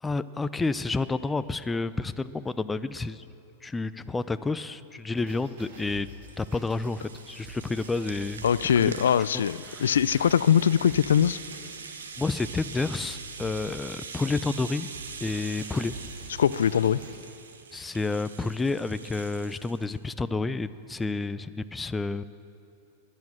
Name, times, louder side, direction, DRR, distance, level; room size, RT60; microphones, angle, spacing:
voice 1, 0.0-3.2 3.6-6.1 6.4-8.4 8.8-9.0 9.3-9.9 12.2-14.9 15.2-16.0 17.7-22.2, left 3 dB, 10° left, 13 dB, 0.5 m, -30 dB
sound 1, 5.2-17.2, right 2 dB, 65° right, 3.6 m, -47 dB
Rattle (instrument), 5.7-19.9, right 5 dB, 90° right, 1.4 m, -43 dB
voice 2, 8.4-11.4 16.4-17.0, left 8 dB, 85° left, 18 dB, 0.3 m, -22 dB
22.0 x 9.6 x 6.3 m, 2.7 s
hypercardioid pair, 115°, 0 cm